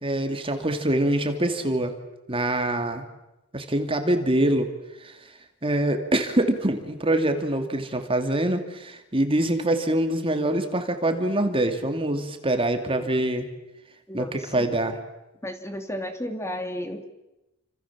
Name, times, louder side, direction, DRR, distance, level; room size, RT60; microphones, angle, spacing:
voice 1, 0.0-1.9 2.3-3.0 3.5-4.7 5.0-5.1 5.6-13.5 14.1-14.2 14.5-14.9, right 1 dB, 25° right, 6 dB, 2.7 m, -24 dB
voice 2, 14.1-14.7 15.4-17.1, equal, 15° left, 6 dB, 2.6 m, -33 dB
30.0 x 27.0 x 7.5 m, 0.97 s
head